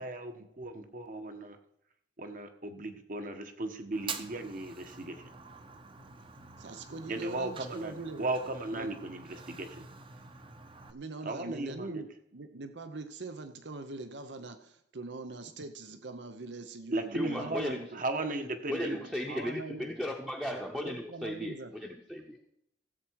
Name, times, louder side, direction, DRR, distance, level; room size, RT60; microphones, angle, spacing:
voice 1, 0.0-1.6 2.2-5.2 7.1-9.7 11.2-11.9 16.9-19.0, right 2 dB, 50° right, 7 dB, 1.3 m, -36 dB
Fire, 3.9-10.9, right 4 dB, 30° right, 0.8 m, -46 dB
voice 2, 6.6-8.2 8.7-8.9 10.9-18.0 19.0-19.9 20.7-21.7, right 3 dB, 85° right, 9 dB, 0.9 m, -43 dB
voice 3, 17.1-17.9 18.7-21.5 21.8-22.4, equal, 5° right, 1 dB, 0.8 m, -36 dB
15.0 x 7.6 x 4.7 m, 0.73 s
head